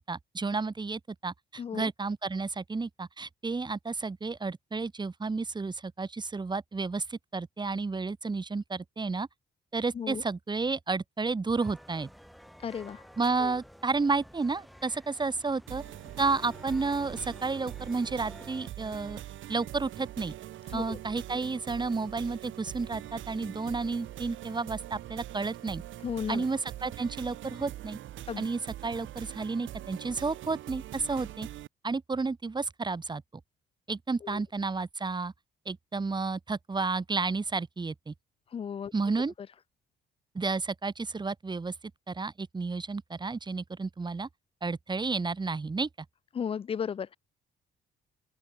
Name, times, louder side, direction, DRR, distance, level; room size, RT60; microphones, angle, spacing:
voice 1, 0.0-9.3 9.7-12.1 13.2-15.8 16.2-19.2 19.5-20.3 20.7-25.8 26.3-28.0 28.4-31.5 31.8-33.2 33.9-35.3 35.6-38.1 38.9-39.3 40.3-41.7 42.1-44.3 44.6-45.9, right 4 dB, 20° right, 1.4 m, -31 dB
voice 2, 1.6-1.9 9.9-10.2 12.6-13.0 13.4-13.5 20.7-21.0 26.0-26.5 28.3-28.4 34.2-34.4 38.5-38.9 46.3-47.2, left 7 dB, 30° left, 0.3 m, -34 dB
sound 1, 11.6-18.7, equal, ahead, 6.7 m, -51 dB
sound 2, 15.7-31.7, right 13 dB, 75° right, 1.2 m, -43 dB
open air
cardioid pair, 90°, 20 cm